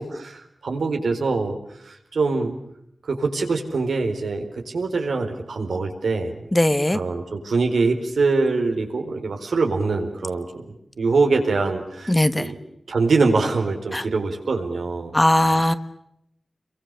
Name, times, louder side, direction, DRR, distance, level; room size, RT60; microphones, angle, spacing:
voice 1, 0.0-1.6 1.8-2.5 3.0-6.4 6.9-10.5 11.0-12.5 12.9-15.2, right 3 dB, 90° right, 4 dB, 4.3 m, -23 dB
voice 2, 6.5-7.0 12.1-12.5 13.9-14.0 15.1-15.7, left 1 dB, 15° left, 11 dB, 1.4 m, -19 dB
29.5 x 23.5 x 6.9 m, 0.77 s
wide cardioid pair, 80°, 0 cm